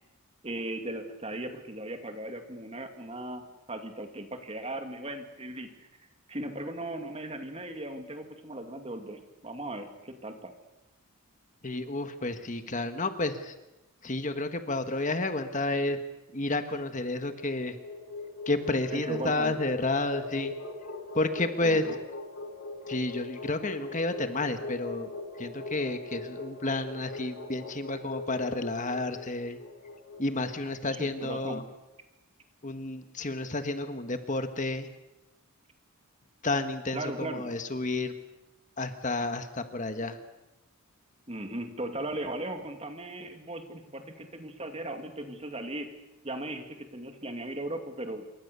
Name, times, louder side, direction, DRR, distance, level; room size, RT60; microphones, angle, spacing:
voice 1, 0.4-10.5 18.9-19.5 21.6-22.0 30.8-31.6 36.9-37.6 41.3-45.9 46.2-48.3, right 1 dB, 30° right, 6 dB, 2.5 m, -38 dB
voice 2, 11.6-13.5 14.0-16.0 16.3-17.8 18.5-20.5 21.1-22.0 22.9-25.1 25.4-29.6 30.2-31.6 32.6-34.9 36.4-38.1 38.8-40.2, left 2 dB, 35° left, 8 dB, 1.5 m, -31 dB
sound 1, 17.3-31.5, left 3 dB, 65° left, 6.0 m, -41 dB
27.5 x 23.5 x 6.9 m, 0.99 s
head